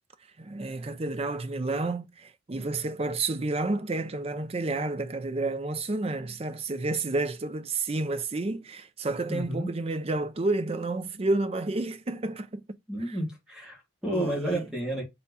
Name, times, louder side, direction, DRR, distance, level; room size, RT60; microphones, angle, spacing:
voice 1, 0.4-12.7 13.1-13.2 14.1-14.6, right 2 dB, 30° right, 0.5 m, -30 dB
voice 2, 9.3-9.7 12.9-15.0, right 1 dB, 5° right, 2.1 m, -31 dB
4.9 x 3.7 x 5.3 m
head